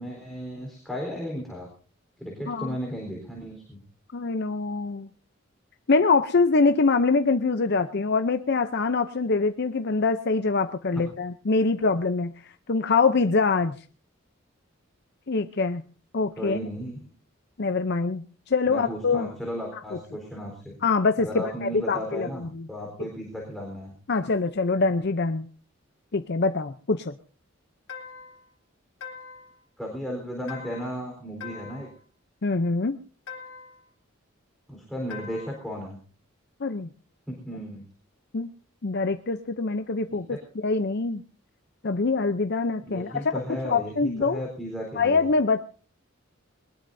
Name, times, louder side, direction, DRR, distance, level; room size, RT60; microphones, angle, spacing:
voice 1, 0.0-1.7 2.2-3.8 16.4-17.1 18.7-20.8 21.2-23.9 29.8-31.9 34.7-36.0 37.3-37.9 40.1-40.4 42.9-45.3, equal, ahead, -1 dB, 4.0 m, -35 dB
voice 2, 2.5-2.8 4.1-5.1 5.9-13.8 15.3-15.8 16.1-16.6 17.6-19.3 20.8-22.3 22.6-22.7 24.1-25.5 26.1-27.1 32.4-33.0 36.6-36.9 38.3-38.5 38.8-41.2 41.8-44.4 45.0-45.6, left 4 dB, 55° left, 8 dB, 0.7 m, -24 dB
sound 1, 27.9-28.4 29.0-29.6 30.5-31.0 31.4-32.0 33.3-33.8 35.1-35.6, left 6 dB, 80° left, 2.5 m, -42 dB
21.0 x 20.0 x 2.7 m, 0.38 s
head